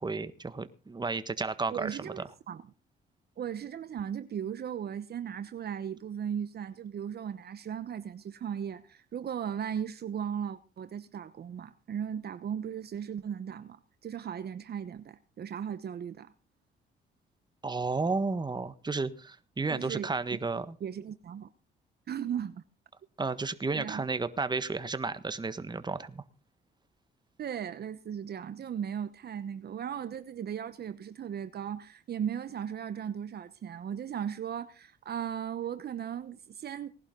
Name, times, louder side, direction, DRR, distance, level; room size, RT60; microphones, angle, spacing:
voice 1, 0.0-2.2 17.6-20.7 23.2-26.2, right 3 dB, 20° right, 1.5 m, -32 dB
voice 2, 1.7-2.6 3.4-13.8 14.0-16.3 19.7-20.4 20.8-21.5 22.1-22.6 23.7-24.0 27.4-36.9, right 8 dB, 55° right, 1.0 m, -37 dB
19.0 x 11.5 x 3.8 m
cardioid pair, 90°, 20 cm